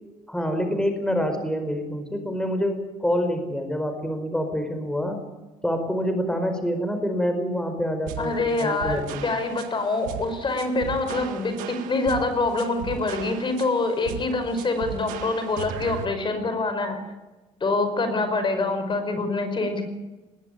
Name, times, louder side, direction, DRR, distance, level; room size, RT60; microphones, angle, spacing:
voice 1, 0.3-5.2 5.6-9.2, equal, 5° left, 6 dB, 5.0 m, -26 dB
sound 1, 8.1-16.1, right 9 dB, 85° right, 1.9 m, -37 dB
voice 2, 8.2-17.0 17.6-19.8, left 3 dB, 35° left, 8 dB, 5.4 m, -25 dB
21.0 x 17.0 x 9.5 m, 1.2 s
supercardioid pair, 75°, 14 cm